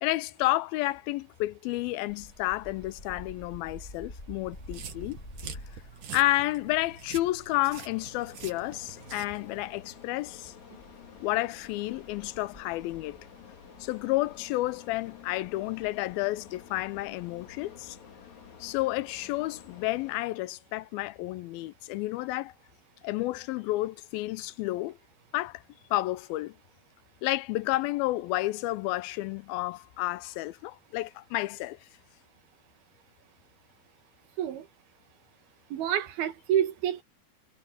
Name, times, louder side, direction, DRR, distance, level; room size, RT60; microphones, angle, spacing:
voice 1, 0.0-5.2 6.1-10.5 11.2-13.2 13.8-18.0 18.6-22.5 23.0-25.0 25.3-25.6 25.9-26.6 27.2-31.8, left 18 dB, 85° left, 2.5 m, -31 dB
sound 1, 2.1-19.8, left 1 dB, 15° left, 8.3 m, -51 dB
sound 2, 4.5-9.6, right 8 dB, 60° right, 3.6 m, -45 dB
sound 3, 7.8-20.2, left 8 dB, 55° left, 3.4 m, -51 dB
voice 2, 35.7-37.0, right 10 dB, 90° right, 3.8 m, -28 dB
omnidirectional pair, 4.3 m